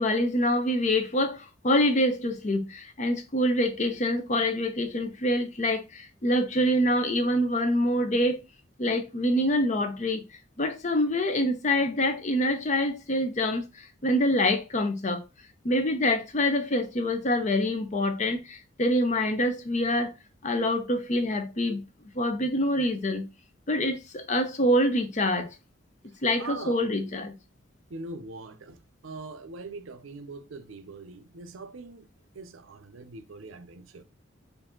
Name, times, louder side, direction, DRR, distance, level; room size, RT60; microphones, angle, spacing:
voice 1, 0.0-8.4 8.8-10.2 10.6-15.2 15.6-20.1 20.4-21.8 22.1-23.3 23.7-25.6 26.2-27.3, left 1 dB, 35° left, 0.6 m, -26 dB
voice 2, 26.4-26.9 27.9-32.1 32.3-34.0, right 3 dB, 80° right, 0.6 m, -42 dB
4.9 x 2.6 x 3.7 m
head